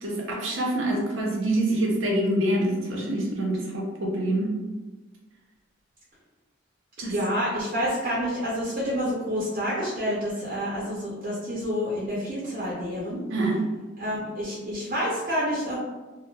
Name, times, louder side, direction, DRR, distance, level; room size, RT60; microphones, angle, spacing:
voice 1, 0.0-4.5 7.0-7.1 13.3-13.6, right 1 dB, 90° right, -2 dB, 0.7 m, -26 dB
voice 2, 7.0-13.2 14.0-15.8, equal, 50° right, -7 dB, 0.6 m, -28 dB
2.9 x 2.0 x 2.3 m, 1.2 s
head